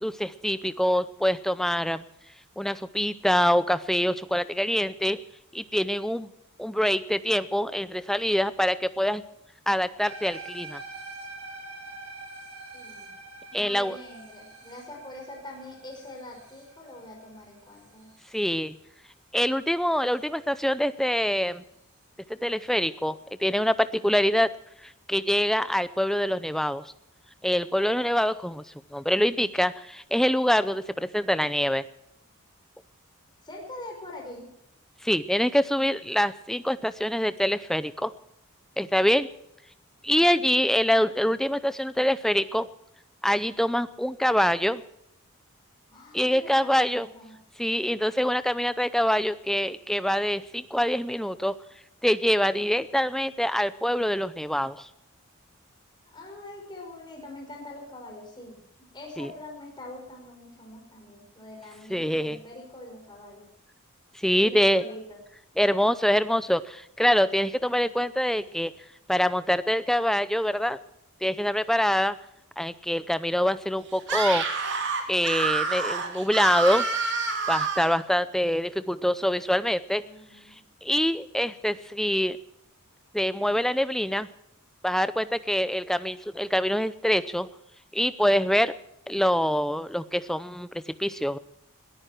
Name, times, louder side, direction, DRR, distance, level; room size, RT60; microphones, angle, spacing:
voice 1, 0.0-2.0 2.6-5.2 5.5-6.3 6.6-9.2 9.7-10.8 13.5-14.0 18.3-18.8 19.3-21.6 22.4-24.5 24.8-26.8 27.4-28.6 28.9-31.8 35.0-38.1 38.8-39.3 40.0-42.7 43.2-44.8 46.1-47.1 47.6-51.5 52.0-54.9 59.2-59.3 61.9-62.4 64.1-64.8 65.6-68.7 69.1-70.8 71.2-72.2 72.6-74.4 75.1-76.9 77.5-80.0 80.8-82.4 83.1-84.3 84.8-87.5 87.9-88.8 89.1-90.7 91.0-91.4, equal, ahead, 14 dB, 0.5 m, -25 dB
sound 1, 10.0-18.4, right 2 dB, 85° right, 6.2 m, -44 dB
voice 2, 12.7-13.1 13.5-18.1 33.4-34.5 40.2-40.6 45.9-47.4 56.0-58.6 58.9-63.5 64.3-65.2 79.9-80.6, left 1 dB, 20° left, 0 dB, 5.4 m, -44 dB
Screaming, 74.0-78.0, right 4 dB, 55° right, 2.9 m, -28 dB
21.5 x 14.0 x 4.5 m, 0.78 s
head